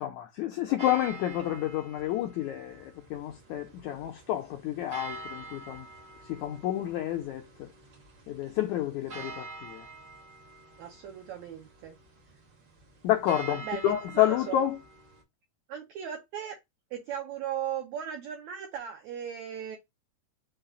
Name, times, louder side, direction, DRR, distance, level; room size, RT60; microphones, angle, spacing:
voice 1, 0.0-5.9 6.3-7.7 8.3-9.9 13.0-14.8, left 12 dB, 85° left, 1.7 m, -29 dB
sound 1, 0.8-15.2, right 3 dB, 70° right, 1.0 m, -47 dB
voice 2, 10.8-12.0 13.5-14.6 15.7-16.6 16.9-19.8, right 9 dB, 85° right, 1.6 m, -37 dB
5.7 x 2.3 x 3.8 m
omnidirectional pair, 4.0 m